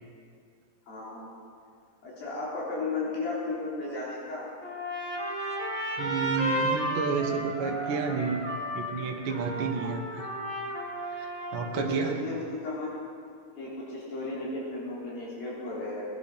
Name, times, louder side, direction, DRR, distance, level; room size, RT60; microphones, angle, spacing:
voice 1, 0.9-1.3 2.0-4.5 9.5-9.7 11.9-13.0 13.6-16.1, left 3 dB, 85° left, -6 dB, 5.4 m, -34 dB
Trumpet, 4.6-11.9, right 1 dB, 35° left, 3.3 m, -33 dB
voice 2, 6.0-8.4 8.7-10.3 11.1-12.2, right 5 dB, 80° right, 2 dB, 1.1 m, -31 dB
18.5 x 10.5 x 5.6 m, 2.2 s
omnidirectional pair, 4.1 m